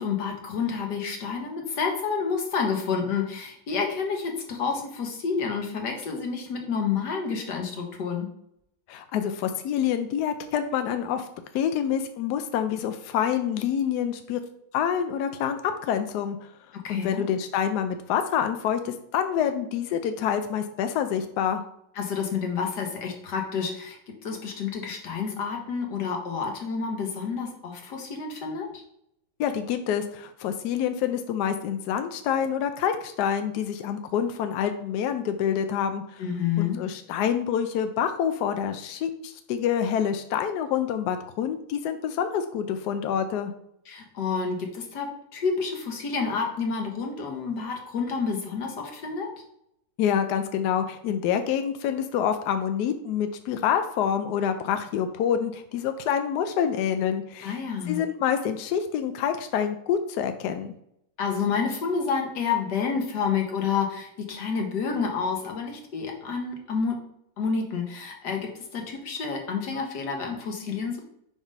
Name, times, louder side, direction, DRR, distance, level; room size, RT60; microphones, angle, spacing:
voice 1, 0.0-8.3 16.8-17.3 21.9-24.0 24.2-28.7 36.2-36.8 43.9-49.3 57.4-58.0 61.2-67.0 67.4-71.0, left 5 dB, 60° left, 2 dB, 1.6 m, -29 dB
voice 2, 8.9-11.2 11.5-14.4 14.7-16.4 16.9-21.6 29.4-36.2 36.6-43.5 50.0-57.6 57.9-60.7, left 8 dB, 80° left, 8 dB, 0.9 m, -27 dB
4.9 x 3.6 x 5.3 m, 0.75 s
omnidirectional pair, 2.3 m